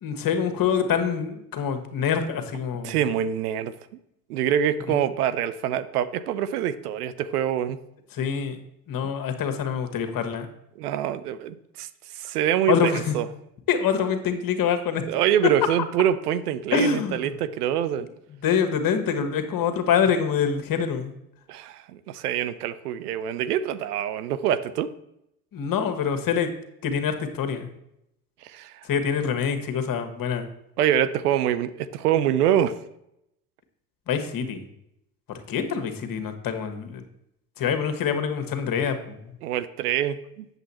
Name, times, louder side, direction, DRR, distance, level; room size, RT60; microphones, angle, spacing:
voice 1, 0.0-3.0 4.9-5.0 8.1-8.6 8.9-10.5 12.7-13.2 13.7-15.0 16.7-17.3 18.4-21.2 25.5-26.5 26.8-27.7 28.8-30.5 34.1-34.6 35.3-37.0 37.6-39.3, left 7 dB, 50° left, 7 dB, 1.4 m, -25 dB
voice 2, 2.8-3.7 4.3-7.8 9.0-9.1 10.8-11.9 12.1-13.3 15.1-18.1 21.5-24.9 28.4-28.7 30.8-32.7 39.4-40.5, right 10 dB, 85° right, 14 dB, 0.6 m, -25 dB
8.0 x 7.1 x 4.2 m, 0.80 s
hypercardioid pair, 65°, 45 cm